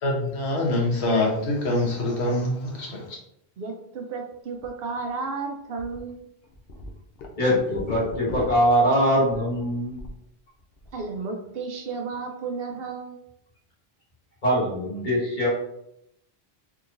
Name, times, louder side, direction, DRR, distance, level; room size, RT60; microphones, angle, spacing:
voice 1, 0.0-3.2, left 1 dB, 90° left, -1 dB, 1.2 m, -25 dB
voice 2, 3.6-6.2 10.9-13.2, right 4 dB, 70° right, 3 dB, 0.8 m, -33 dB
sound 1, 4.5-4.7 5.1-5.2 5.8-6.0 6.4-10.2 10.6-11.0, left 2 dB, 70° left, 0.8 m, -39 dB
voice 3, 7.4-9.9 14.4-15.5, equal, 50° left, -6 dB, 1.6 m, -22 dB
3.6 x 2.9 x 2.5 m, 0.76 s
omnidirectional pair, 1.1 m